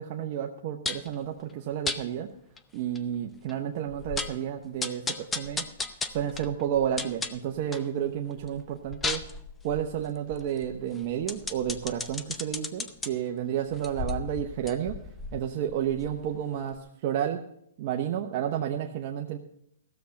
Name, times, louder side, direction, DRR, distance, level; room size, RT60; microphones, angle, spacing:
voice 1, 0.0-2.3 2.7-5.6 6.1-9.2 9.6-15.0 15.3-16.8 17.0-17.4 17.8-19.4, right 10 dB, 40° right, 3 dB, 0.8 m, -31 dB
sound 1, 0.9-1.1 1.9-2.0 2.6-2.7 3.0-3.1 3.5-3.6 3.9-4.4 4.8-7.9 8.3-13.1 13.7-16.4 16.7-16.8, left 4 dB, 10° left, 0.6 m, -35 dB
15.5 x 7.1 x 6.5 m, 0.73 s
hypercardioid pair, 155°, 0 cm